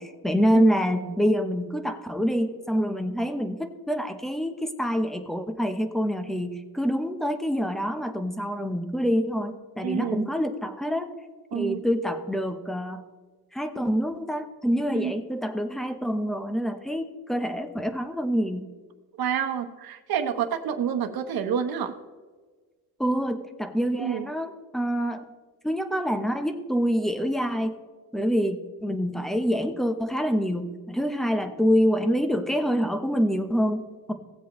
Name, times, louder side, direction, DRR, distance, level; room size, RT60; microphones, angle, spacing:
voice 1, 0.0-11.1 11.5-13.0 13.5-18.6 23.0-25.3 25.6-27.8 28.1-34.1, equal, ahead, 8 dB, 0.7 m, -26 dB
voice 2, 9.8-10.3 11.5-11.8 14.9-15.1 19.2-21.9 24.0-24.2, right 8 dB, 70° right, 6 dB, 1.1 m, -28 dB
17.5 x 7.7 x 3.1 m, 1.4 s
cardioid pair, 150°, 37 cm